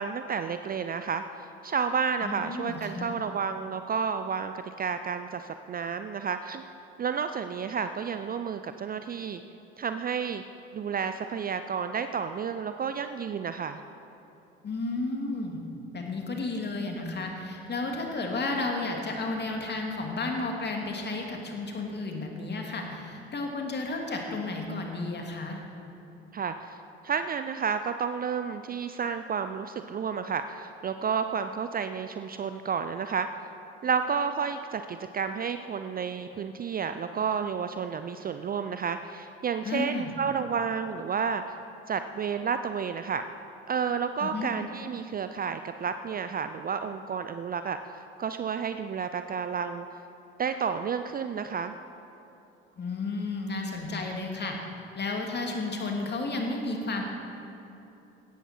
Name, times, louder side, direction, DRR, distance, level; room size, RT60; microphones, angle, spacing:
voice 1, 0.0-6.6 7.0-9.4 9.8-10.4 10.7-13.8 26.3-33.3 33.8-41.5 41.9-43.2 43.7-47.8 48.2-49.9 50.4-51.7, right 6 dB, 30° right, 9 dB, 0.6 m, -31 dB
voice 2, 2.2-3.1 14.6-15.6 15.9-25.6 39.6-40.1 44.2-44.5 52.8-54.6 54.9-57.0, left 3 dB, 30° left, 1 dB, 2.5 m, -32 dB
17.0 x 13.0 x 4.4 m, 2.9 s
figure-of-eight pair, 55°, 32 cm